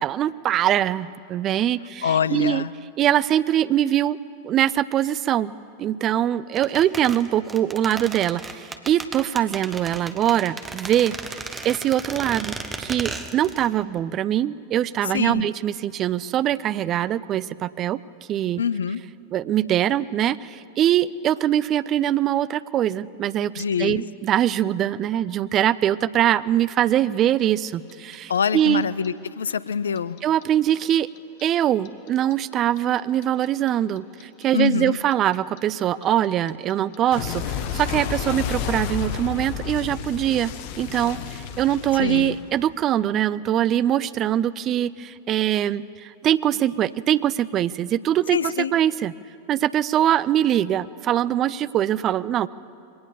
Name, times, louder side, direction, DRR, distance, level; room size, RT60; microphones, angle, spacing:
voice 1, 0.0-2.7 3.0-4.2 4.4-11.2 11.6-18.0 18.3-18.6 19.3-28.8 30.2-31.1 31.4-40.5 40.8-48.4 48.7-49.1 49.5-52.5, right 11 dB, 30° right, 18 dB, 0.5 m, -23 dB
voice 2, 2.0-2.7 15.1-15.5 18.6-19.0 23.6-24.0 28.3-30.2 34.5-35.0 42.0-42.4 48.3-48.7, left 7 dB, 70° left, 18 dB, 0.5 m, -25 dB
sound 1, 6.6-13.7 14.0-14.1, right 3 dB, 15° right, 1.4 m, -35 dB
Clock, 27.4-30.4 30.7-33.7 34.0-42.8, left 7 dB, 45° left, 1.3 m, -31 dB
22.5 x 18.0 x 7.1 m, 2.6 s
figure-of-eight pair, 90°, 0 cm